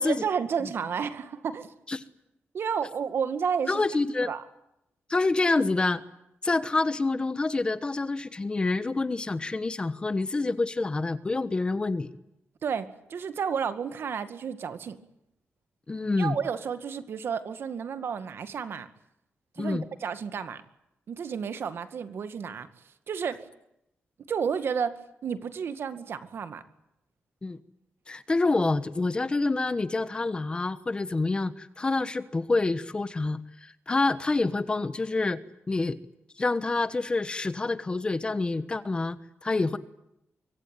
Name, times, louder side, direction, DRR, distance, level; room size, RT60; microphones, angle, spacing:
voice 1, 0.0-1.7 2.5-3.9 4.2-4.4 12.6-15.0 16.2-18.9 19.6-20.6 21.1-22.7 23.1-23.5 24.3-26.6, right 6 dB, 65° right, 11 dB, 2.1 m, -31 dB
voice 2, 3.7-4.3 5.1-6.0 6.4-12.1 15.9-16.4 19.6-19.8 27.4-27.6 28.1-35.4 35.7-36.0 36.4-39.8, left 3 dB, 20° left, 14 dB, 1.2 m, -27 dB
24.5 x 24.5 x 9.2 m, 0.83 s
wide cardioid pair, 160°, 4 cm